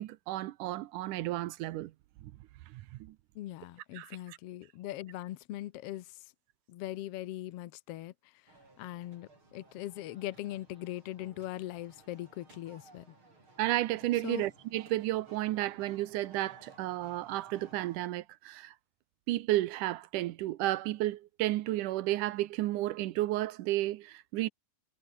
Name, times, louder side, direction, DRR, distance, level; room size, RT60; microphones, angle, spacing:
voice 1, 0.0-1.9 2.2-2.3 2.7-3.2 4.0-4.4 13.6-18.7 19.3-24.5, right 16 dB, 85° right, 2.3 m, -32 dB
voice 2, 3.3-6.3 6.7-8.5 8.8-13.1 14.2-14.5, left 14 dB, 75° left, 1.4 m, -41 dB
sound 1, 8.5-18.1, right 2 dB, 40° right, 7.7 m, -58 dB
omnidirectional pair, 3.7 m